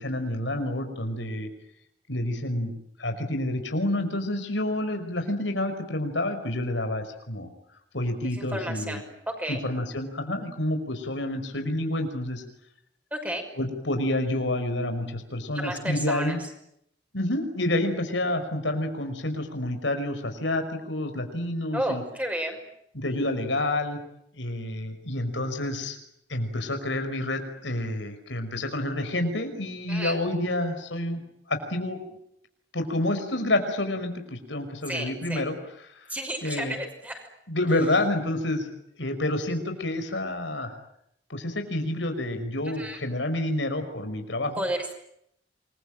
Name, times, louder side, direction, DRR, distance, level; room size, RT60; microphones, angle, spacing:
voice 1, 0.0-1.5 2.1-2.7 3.0-7.5 7.9-9.0 9.5-12.4 13.6-16.4 17.1-22.0 22.9-24.0 24.3-26.0 26.3-31.2 31.5-32.0 32.7-35.5 36.0-36.1 36.4-36.8 37.5-38.7 39.0-40.7 41.3-44.6, left 1 dB, 90° left, 6 dB, 5.5 m, -28 dB
voice 2, 8.3-9.6 13.1-13.5 15.6-16.5 21.7-22.6 29.9-30.2 34.9-35.4 36.1-37.3 42.8-43.0 44.6-44.9, right 1 dB, 10° right, 4 dB, 6.0 m, -32 dB
28.5 x 22.5 x 9.0 m, 0.75 s
head